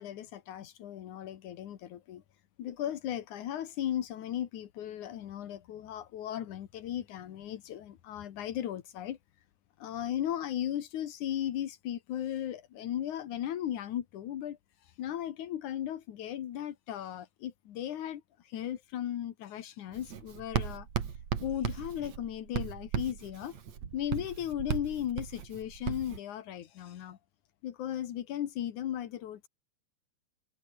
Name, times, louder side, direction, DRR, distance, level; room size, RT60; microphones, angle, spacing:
voice 1, 0.0-2.2 2.6-9.2 9.8-14.6 15.0-20.9 21.4-23.6 23.9-27.2 27.6-29.5, left 11 dB, 85° left, 3.0 m, -36 dB
Writing, 19.9-26.2, right 7 dB, 65° right, 3.6 m, -36 dB
omnidirectional pair, 3.4 m